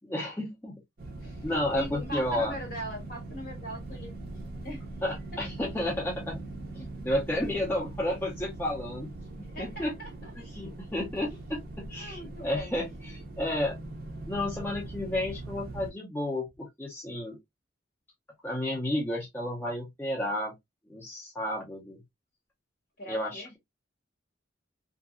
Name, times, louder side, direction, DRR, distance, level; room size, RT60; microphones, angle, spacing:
voice 1, 0.0-0.8 1.4-2.5 5.0-6.4 6.7-9.1 9.6-9.9 10.4-13.8 14.3-17.4 18.4-20.5 20.9-22.0 23.1-23.6, left 1 dB, 10° left, 0.6 m, -32 dB
sound 1, 1.0-15.9, right 2 dB, 50° right, 0.5 m, -41 dB
voice 2, 1.7-4.2 4.6-4.8 5.3-5.4 9.3-10.3 11.9-12.7 23.0-23.5, equal, 50° left, 1.2 m, -41 dB
2.8 x 2.5 x 2.4 m
head